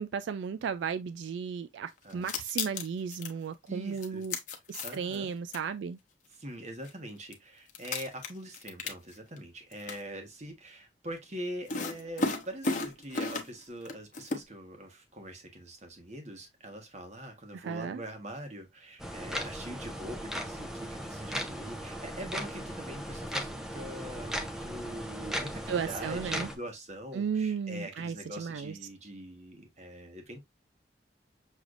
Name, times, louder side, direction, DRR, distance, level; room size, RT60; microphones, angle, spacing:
voice 1, 0.0-4.4 4.7-6.0 17.5-18.0 25.7-26.5 27.1-28.8, right 6 dB, 80° right, 0.3 m, -34 dB
sound 1, 2.1-3.3 4.0-5.2 5.5-5.6 6.8-6.9 7.3-7.4 7.7-9.4 9.7-10.0 11.7-13.6 13.9-14.4, left 3 dB, 45° left, 0.9 m, -33 dB
voice 2, 3.7-4.2 4.8-5.3 6.3-30.4, right 1 dB, 40° right, 1.2 m, -43 dB
sound 2, 19.0-26.6, equal, 5° right, 0.6 m, -37 dB
6.4 x 3.3 x 2.5 m
head